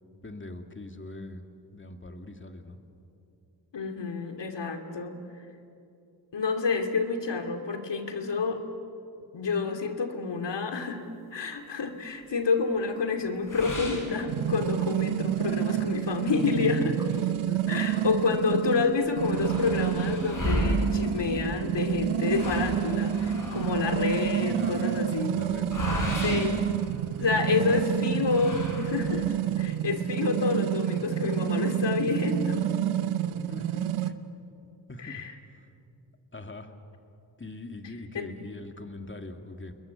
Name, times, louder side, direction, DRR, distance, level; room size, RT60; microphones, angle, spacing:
voice 1, 0.2-1.5 1.7-2.8 15.4-16.2 17.5-18.1 24.4-25.0 25.3-26.0 26.3-26.6 27.3-27.8 33.3-34.2 34.9-35.2 35.5-35.7 36.3-36.7 37.4-39.8, left 2 dB, 25° left, 6 dB, 2.4 m, -42 dB
voice 2, 3.7-5.2 6.3-8.6 9.3-11.0 11.3-17.0 17.7-25.4 26.2-26.6 27.2-32.7 35.0-35.3 38.1-38.3, left 4 dB, 60° left, 5 dB, 2.6 m, -28 dB
sound 1, 13.5-14.9 15.4-15.5 15.9-16.0 16.8-18.1 18.5-18.6 18.8-27.5 28.2-29.4, left 1 dB, 40° left, 6.1 m, -35 dB
sound 2, 14.3-34.1, right 11 dB, 85° right, 1.0 m, -29 dB
sound 3, 14.6-15.1 16.9-17.9 18.3-22.4, right 3 dB, 5° right, 5.8 m, -42 dB
29.0 x 21.0 x 8.2 m, 2.7 s
cardioid pair, 55°, 48 cm